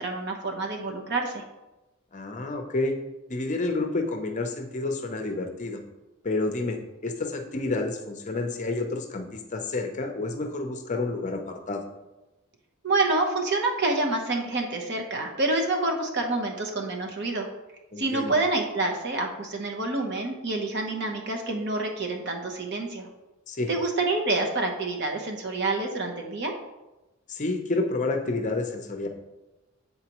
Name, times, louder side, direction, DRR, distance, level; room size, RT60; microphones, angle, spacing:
voice 1, 0.0-1.4 12.8-17.5 18.0-23.1 23.7-26.5, right 2 dB, 55° right, 3 dB, 0.9 m, -27 dB
voice 2, 2.1-2.9 3.3-5.8 6.2-6.8 7.0-11.8 17.9-18.3 23.5-23.7 27.3-29.1, left 2 dB, 35° left, 5 dB, 0.6 m, -29 dB
8.1 x 4.0 x 3.0 m, 1.0 s
head